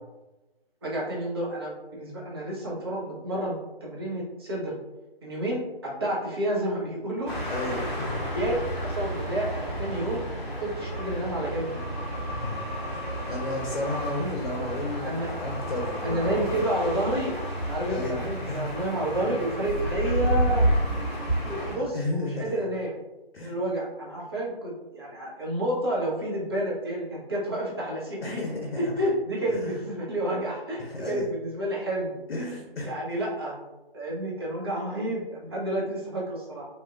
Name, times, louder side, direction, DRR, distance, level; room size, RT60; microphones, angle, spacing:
voice 1, 0.8-4.7 5.2-7.3 7.7-7.9 8.3-11.8 14.0-14.3 15.0-15.3 16.0-20.6 21.4-23.0 23.4-28.4 28.8-32.5 32.8-33.6 33.9-36.6, right 1 dB, 25° right, -5 dB, 0.5 m, -30 dB
sound 1, 7.3-21.8, right 1 dB, ahead, 0.9 m, -30 dB
voice 2, 7.5-8.2 12.3-16.6 17.9-18.7 21.7-22.6 23.3-23.5 28.2-28.9 29.5-29.8 30.8-31.3 32.3-32.9, left 2 dB, 70° left, 0 dB, 0.7 m, -33 dB
2.9 x 2.2 x 2.3 m, 1.0 s
figure-of-eight pair, 145°, 31 cm